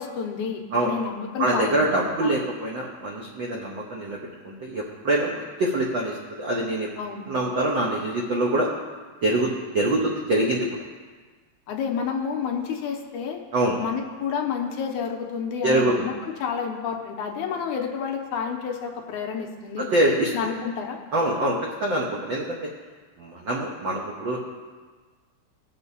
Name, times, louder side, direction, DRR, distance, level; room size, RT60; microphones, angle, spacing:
voice 1, 0.0-2.3 7.0-7.2 11.7-13.4 13.8-16.1 16.4-19.9 20.3-21.0, left 6 dB, 75° left, 2 dB, 2.3 m, -30 dB
voice 2, 1.4-6.9 7.3-8.7 9.2-10.7 13.5-13.8 15.6-16.1 19.9-20.3 21.1-22.7 23.2-24.4, right 1 dB, 80° right, -2 dB, 1.0 m, -24 dB
18.5 x 7.3 x 2.7 m, 1.4 s
omnidirectional pair, 3.6 m